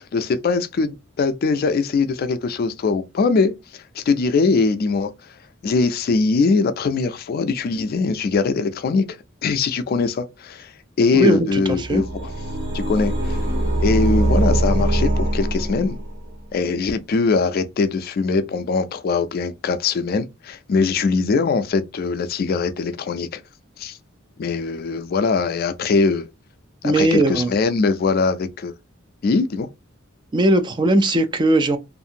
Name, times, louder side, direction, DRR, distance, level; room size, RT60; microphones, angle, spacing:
voice 1, 0.0-3.5 3.9-5.1 5.6-9.2 9.4-10.7 11.0-12.3 12.7-13.4 13.8-16.0 16.5-23.4 23.8-24.0 24.4-26.3 26.8-28.7 29.2-29.7, left 4 dB, 50° left, 0.3 m, -21 dB
voice 2, 11.1-12.0 26.8-27.5 30.3-31.8, right 1 dB, 25° right, 0.3 m, -18 dB
sound 1, 11.7-16.3, right 1 dB, 60° right, 1.2 m, -22 dB
2.6 x 2.5 x 2.7 m
head